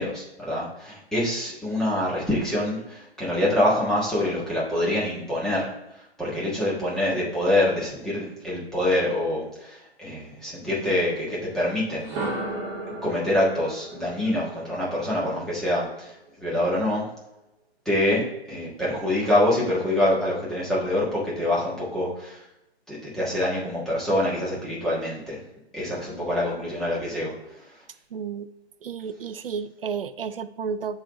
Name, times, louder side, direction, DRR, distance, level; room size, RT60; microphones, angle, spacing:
voice 1, 0.0-12.1 12.8-17.1 17.8-22.5 22.9-25.4 25.7-27.8, left 1 dB, ahead, -8 dB, 1.4 m, -26 dB
sound 1, 11.9-15.9, right 2 dB, 20° right, 1.1 m, -35 dB
voice 2, 28.1-28.5 28.8-31.0, right 6 dB, 60° right, 13 dB, 0.5 m, -32 dB
6.9 x 4.0 x 3.8 m, 0.90 s
figure-of-eight pair, 135°, 32 cm